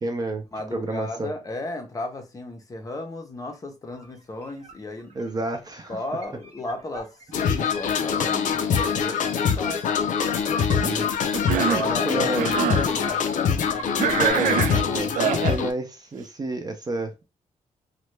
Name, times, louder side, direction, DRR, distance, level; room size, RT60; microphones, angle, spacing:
voice 1, 0.0-0.4 0.7-1.3 5.1-6.0 7.5-7.7 10.5-11.1 12.0-12.6 14.0-17.2, right 2 dB, 30° right, 0.5 m, -30 dB
voice 2, 0.5-5.2 5.9-10.0 10.3-10.7 11.4-13.9, left 2 dB, 25° left, 0.6 m, -35 dB
sound 1, 3.9-8.2 9.2-9.3 9.6-14.3, right 3 dB, 55° right, 0.9 m, -44 dB
sound 2, 7.3-15.7, left 7 dB, 75° left, 0.4 m, -24 dB
Cough, 11.3-11.9 12.3-12.9 14.0-15.6, right 8 dB, 90° right, 0.4 m, -25 dB
3.1 x 2.2 x 3.1 m
wide cardioid pair, 160°, 13 cm